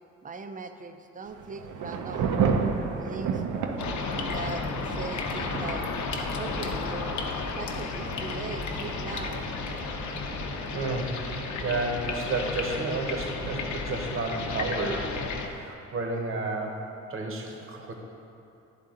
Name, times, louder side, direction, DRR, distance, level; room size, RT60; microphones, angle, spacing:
voice 1, 0.2-2.3 2.9-3.5 4.2-5.8 6.3-7.2 7.5-9.5, right 4 dB, 25° right, 7 dB, 0.5 m, -40 dB
Thunder / Rain, 1.3-15.7, right 5 dB, 75° right, 0.6 m, -35 dB
sound 1, 3.8-15.5, left 4 dB, 75° left, 0.7 m, -33 dB
voice 2, 10.7-11.2 11.6-16.8 17.1-17.9, right 3 dB, 45° right, 1 dB, 0.9 m, -31 dB
11.0 x 3.7 x 3.7 m, 2.7 s
cardioid pair, 90°, 30 cm